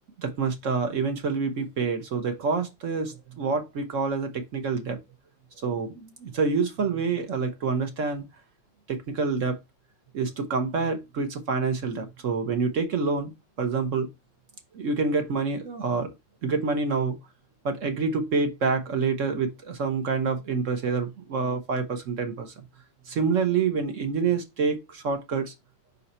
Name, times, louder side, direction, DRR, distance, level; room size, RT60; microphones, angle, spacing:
voice 1, 0.2-5.0 5.6-8.2 8.9-9.6 10.1-13.3 13.6-14.1 14.7-16.1 16.4-17.2 17.6-22.5 23.1-25.5, right 4 dB, 55° right, 0.9 m, -27 dB
5.5 x 4.1 x 4.2 m
omnidirectional pair, 2.3 m